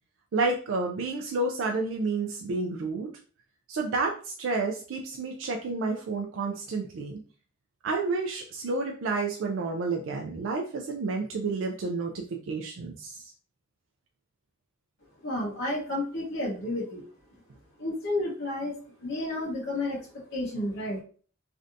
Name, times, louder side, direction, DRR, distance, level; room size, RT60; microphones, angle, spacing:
voice 1, 0.3-3.1 3.7-7.2 7.8-13.2, right 3 dB, 80° right, 2 dB, 0.4 m, -30 dB
voice 2, 15.2-17.0 17.8-18.7 19.0-21.0, left 1 dB, 70° left, -6 dB, 0.9 m, -31 dB
3.2 x 2.6 x 2.5 m, 0.41 s
head